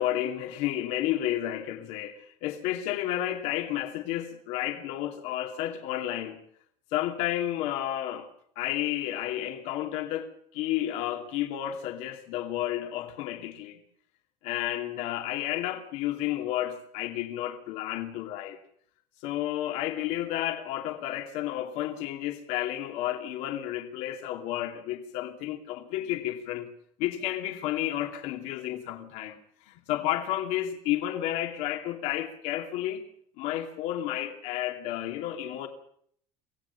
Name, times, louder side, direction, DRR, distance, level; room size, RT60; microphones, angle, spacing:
voice 1, 0.0-6.4 6.9-8.3 8.6-13.8 14.4-18.6 19.2-26.7 27.0-29.4 29.6-33.0 33.4-35.7, left 13 dB, 75° left, 2.7 m, -31 dB
25.5 x 17.0 x 7.1 m
cardioid pair, 155°, 12 cm